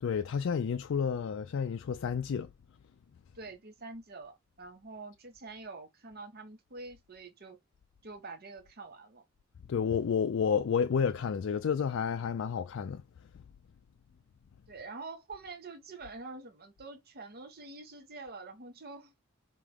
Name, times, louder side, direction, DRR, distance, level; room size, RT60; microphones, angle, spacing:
voice 1, 0.0-2.5 9.7-13.0, left 6 dB, 60° left, 0.3 m, -30 dB
voice 2, 3.3-7.6 8.0-9.2 14.7-19.1, right 3 dB, 45° right, 0.9 m, -46 dB
4.9 x 2.9 x 3.4 m
head